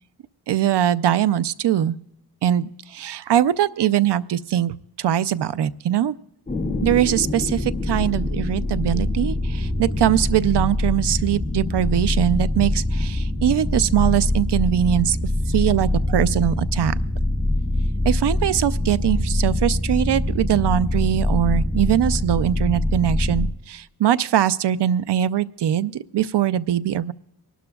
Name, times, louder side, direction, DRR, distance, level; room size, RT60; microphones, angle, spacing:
voice 1, 0.5-2.0 2.4-6.1 6.8-15.2 15.5-16.9 18.0-27.1, right 11 dB, 80° right, 16 dB, 0.5 m, -21 dB
sound 1, 6.5-23.5, left 1 dB, 15° left, 2.0 m, -24 dB
24.5 x 12.0 x 2.3 m, 0.83 s
wide cardioid pair, 135°, 40 cm